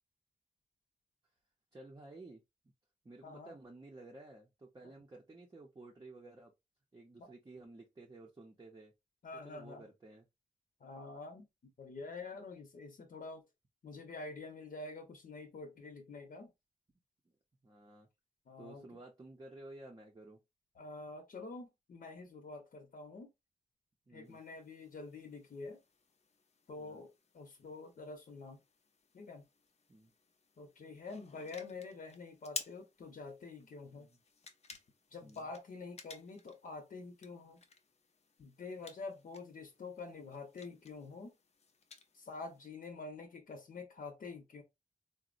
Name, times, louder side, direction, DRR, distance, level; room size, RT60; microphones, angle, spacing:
voice 1, 1.7-2.4 3.0-6.5 6.9-8.9 9.4-10.3 17.6-18.1 18.6-20.4 24.1-24.4 26.8-27.0 29.9-30.1 33.9-34.2 35.2-35.5, right 2 dB, 25° right, 0.6 m, -53 dB
voice 2, 3.2-3.5 7.2-7.3 9.2-9.8 10.8-11.5 11.8-13.4 13.8-16.5 18.5-18.8 20.8-23.3 24.1-25.8 26.7-28.6 29.1-29.4 30.6-34.1 35.1-37.6 38.4-41.3 42.1-44.6, left 3 dB, 70° left, 0.8 m, -47 dB
sound 1, 24.2-42.7, left 5 dB, 45° left, 0.5 m, -54 dB
3.9 x 2.0 x 2.5 m
wide cardioid pair, 160°, 15 cm